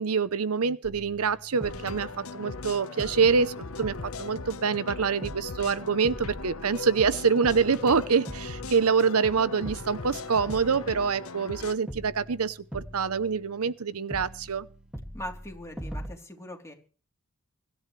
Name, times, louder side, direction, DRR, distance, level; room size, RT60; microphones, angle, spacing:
voice 1, 0.0-14.7, right 5 dB, 80° right, 0.8 m, -26 dB
sound 1, 0.8-2.7 3.0-4.9 5.2-7.1 7.4-9.4 9.7-11.6 11.9-13.8 14.1-16.1, equal, 5° right, 2.2 m, -43 dB
sound 2, 1.6-11.7, left 3 dB, 70° left, 1.2 m, -39 dB
voice 2, 15.1-16.7, equal, 15° left, 3.5 m, -40 dB
24.0 x 12.5 x 3.3 m
head